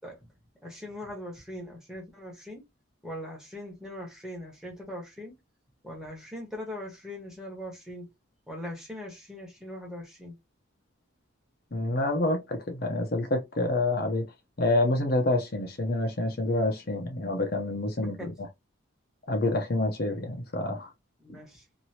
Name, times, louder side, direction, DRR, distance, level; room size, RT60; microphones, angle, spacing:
voice 1, 0.6-2.7 3.0-5.3 5.8-8.1 8.5-10.3 17.9-18.3 21.2-21.7, left 1 dB, 5° right, 1.2 m, -41 dB
voice 2, 11.7-14.3 14.6-18.3 19.3-20.9 21.3-21.4, left 2 dB, 45° left, 0.6 m, -27 dB
3.0 x 2.6 x 2.8 m
head